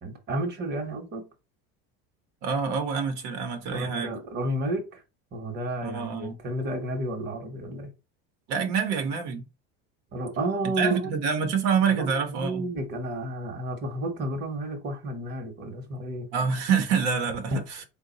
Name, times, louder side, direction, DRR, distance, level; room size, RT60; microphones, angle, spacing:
voice 1, 0.0-1.3 3.7-5.0 5.3-7.9 10.1-11.1 11.9-16.3 17.5-17.6, right 1 dB, 35° right, 1.0 m, -31 dB
voice 2, 2.4-4.2 5.8-6.3 8.5-9.4 10.8-12.7 16.3-17.8, right 6 dB, 75° right, 0.9 m, -26 dB
3.8 x 2.3 x 3.9 m
cardioid pair, 140°, 31 cm